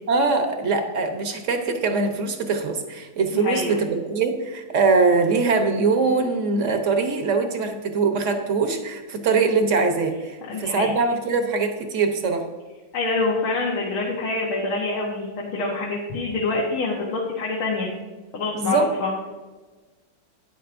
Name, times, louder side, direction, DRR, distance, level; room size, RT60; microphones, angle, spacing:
voice 1, 0.1-12.4 18.5-18.9, right 4 dB, 50° right, 5 dB, 1.0 m, -22 dB
voice 2, 3.3-3.9 10.5-11.0 12.9-17.9 18.3-19.1, left 3 dB, 90° left, -3 dB, 2.0 m, -26 dB
12.5 x 9.6 x 2.6 m, 1.3 s
omnidirectional pair, 2.2 m